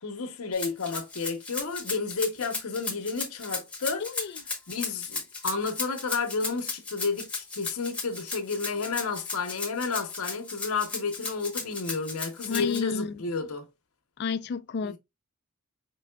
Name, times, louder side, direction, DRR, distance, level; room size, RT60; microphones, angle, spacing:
voice 1, 0.0-4.1 4.7-13.7 14.8-15.0, left 4 dB, 90° left, 0.8 m, -31 dB
Rattle (instrument), 0.5-12.8, left 4 dB, 5° left, 0.9 m, -35 dB
voice 2, 4.0-4.4 12.5-13.1 14.2-15.0, left 5 dB, 50° left, 0.3 m, -31 dB
4.6 x 3.4 x 2.2 m
head